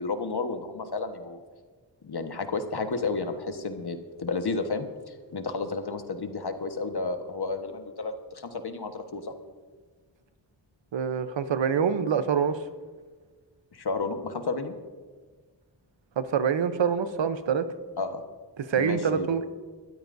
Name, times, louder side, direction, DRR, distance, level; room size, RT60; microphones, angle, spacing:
voice 1, 0.0-1.4 2.0-9.3 13.7-14.7 18.0-18.2 18.8-19.3, left 3 dB, 60° left, 6 dB, 1.4 m, -32 dB
voice 2, 10.9-12.6 16.2-17.6 18.6-19.4, right 7 dB, 85° right, 11 dB, 0.8 m, -25 dB
23.0 x 13.0 x 2.7 m, 1.4 s
cardioid pair, 45°, 43 cm